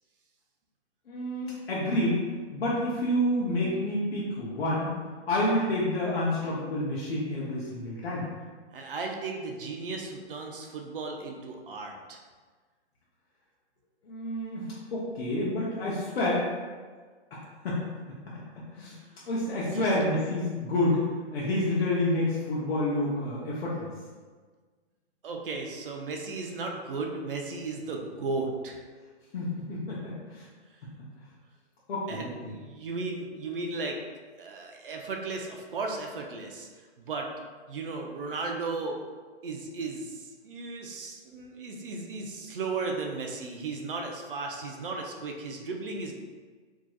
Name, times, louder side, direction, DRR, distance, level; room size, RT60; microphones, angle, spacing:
voice 1, 1.1-2.2 2.5-4.9 5.3-8.3 14.0-14.7 14.9-16.5 17.3-17.4 17.6-17.8 18.3-19.0 19.3-23.9 29.3-30.5 31.9-32.5, left 1 dB, 60° left, -7 dB, 0.9 m, -29 dB
voice 2, 8.7-12.2 19.6-19.9 25.2-28.8 32.1-34.0 34.4-36.7 37.0-37.3 37.7-39.0 39.4-46.1, right 3 dB, 50° right, 2 dB, 0.6 m, -35 dB
4.7 x 2.9 x 2.3 m, 1.5 s
hypercardioid pair, 170°, 34 cm